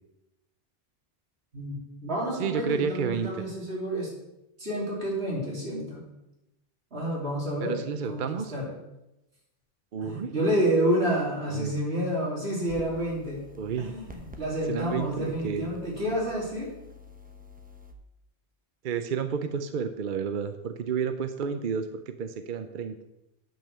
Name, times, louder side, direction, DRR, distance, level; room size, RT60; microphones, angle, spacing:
voice 1, 1.5-4.1 4.6-6.0 6.9-7.8 8.1-8.7 10.0-13.5 13.8-16.7, right 1 dB, 80° right, -4 dB, 3.5 m, -29 dB
voice 2, 2.4-3.3 7.6-8.5 9.9-10.3 11.5-11.8 13.6-13.9 14.7-15.7 18.8-23.0, right 6 dB, 55° right, 9 dB, 0.7 m, -31 dB
sound 1, 12.7-17.9, left 3 dB, 10° right, 0.8 m, -48 dB
9.2 x 5.4 x 6.7 m, 0.91 s
omnidirectional pair, 1.1 m